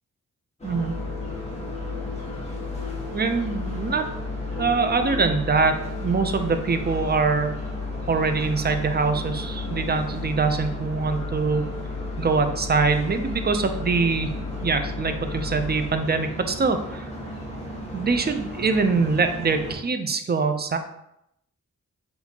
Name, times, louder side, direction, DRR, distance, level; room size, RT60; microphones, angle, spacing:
sound 1, 0.6-16.0, left 4 dB, 80° left, 0.8 m, -34 dB
sound 2, 0.6-19.7, equal, 20° left, 1.3 m, -36 dB
voice 1, 0.6-0.9 3.1-4.0 4.6-7.6 8.1-11.7 12.2-14.3 14.6-17.1 17.9-20.8, right 4 dB, 35° right, 7 dB, 0.5 m, -23 dB
5.8 x 2.6 x 2.8 m, 0.78 s
wide cardioid pair, 90°, 31 cm